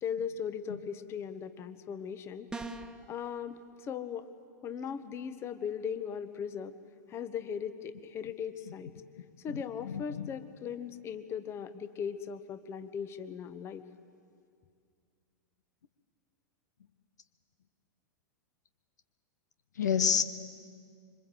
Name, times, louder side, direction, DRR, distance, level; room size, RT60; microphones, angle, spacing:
voice 1, 0.0-2.5 3.1-4.3 4.6-6.7 7.1-8.9 9.4-13.8, left 7 dB, 25° left, 11 dB, 1.3 m, -38 dB
sound 1, 2.5-3.0, right 3 dB, 5° right, 1.3 m, -39 dB
voice 2, 9.8-10.3 19.8-20.2, left 7 dB, 70° left, 11 dB, 1.0 m, -28 dB
26.0 x 24.5 x 7.7 m, 2.3 s
figure-of-eight pair, 95°, 10 cm